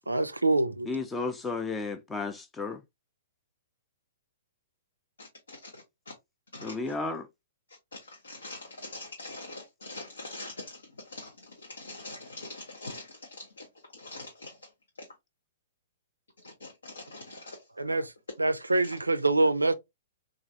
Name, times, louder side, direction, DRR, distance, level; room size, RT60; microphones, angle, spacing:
voice 1, 0.1-0.9 17.8-18.1 18.4-19.7, right 2 dB, 85° right, 0.4 m, -25 dB
voice 2, 0.9-2.8 6.6-7.3, left 3 dB, 10° left, 0.4 m, -33 dB
voice 3, 5.2-6.1 6.5-6.9 7.7-13.7 13.9-14.7 15.0-15.1 16.4-17.6 18.8-18.9, left 2 dB, 75° left, 0.7 m, -44 dB
3.1 x 2.4 x 2.6 m
figure-of-eight pair, 115°, 0 cm